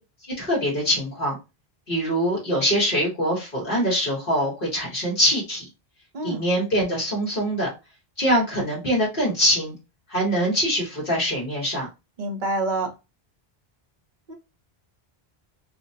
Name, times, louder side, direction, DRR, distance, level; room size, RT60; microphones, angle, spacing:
voice 1, 0.4-1.3 1.9-5.6 6.2-7.7 8.2-9.7 10.1-11.9, equal, 55° left, -4 dB, 1.4 m, -23 dB
voice 2, 12.2-12.9 14.3-14.4, right 2 dB, 50° right, 3 dB, 1.0 m, -27 dB
4.4 x 2.2 x 2.7 m, 0.26 s
omnidirectional pair, 1.1 m